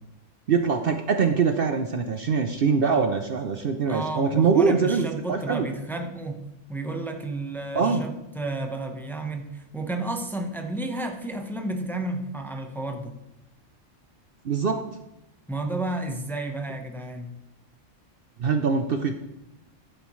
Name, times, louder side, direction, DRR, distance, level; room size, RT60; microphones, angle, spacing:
voice 1, 0.5-5.7 7.7-8.0 14.4-14.8 18.4-19.2, right 5 dB, 55° right, 7 dB, 0.8 m, -23 dB
voice 2, 3.9-13.2 15.5-17.3, right 2 dB, ahead, 3 dB, 0.9 m, -32 dB
11.0 x 9.2 x 3.1 m, 0.89 s
omnidirectional pair, 1.3 m